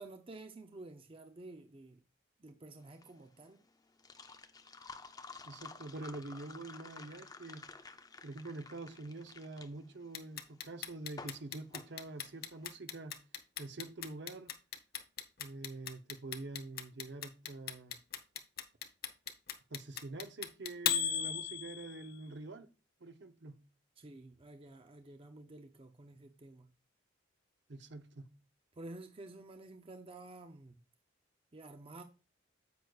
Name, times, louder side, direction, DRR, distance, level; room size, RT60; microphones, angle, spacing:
voice 1, 0.0-2.0 2.4-3.6 24.0-26.7 28.8-30.8 31.5-32.0, right 2 dB, 30° right, 0.5 m, -51 dB
sound 1, 2.8-12.7, left 4 dB, 20° left, 0.5 m, -52 dB
voice 2, 5.5-7.7 8.2-13.2 13.6-14.5 15.4-18.0 19.7-22.7 23.0-23.6 27.7-28.3, right 2 dB, 60° right, 0.7 m, -46 dB
Clock, 10.1-22.1, left 9 dB, 50° left, 0.8 m, -37 dB
9.3 x 7.9 x 2.3 m
head